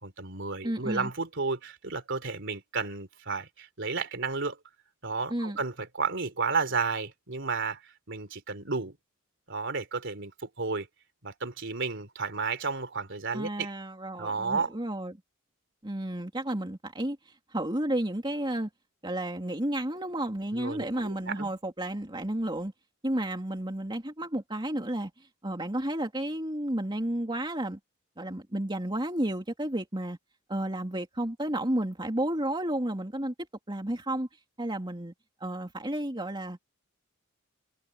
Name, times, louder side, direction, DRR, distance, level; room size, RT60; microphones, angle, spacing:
voice 1, 0.0-4.6 5.0-9.0 9.5-10.9 11.2-13.7 14.2-14.7 20.5-21.5, right 4 dB, 60° right, 3.5 m, -32 dB
voice 2, 0.6-1.1 5.3-5.6 13.3-15.1 15.8-18.7 19.0-22.7 23.0-25.1 25.4-27.8 28.2-30.2 30.5-33.3 33.7-34.3 34.6-35.1 35.4-36.6, right 1 dB, 20° right, 2.7 m, -32 dB
head